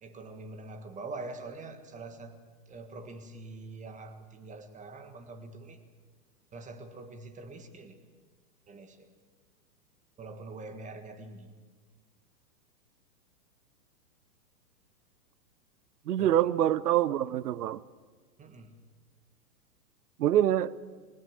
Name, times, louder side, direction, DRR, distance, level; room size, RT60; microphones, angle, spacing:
voice 1, 0.0-2.4 2.7-5.8 6.5-8.0 8.7-9.1 10.2-11.5 16.2-16.5 18.4-18.7, right 3 dB, 15° right, 9 dB, 1.6 m, -44 dB
voice 2, 16.1-17.8 20.2-20.7, right 12 dB, 75° right, 20 dB, 0.9 m, -25 dB
19.5 x 18.0 x 8.1 m, 1.5 s
hypercardioid pair, 125°, 48 cm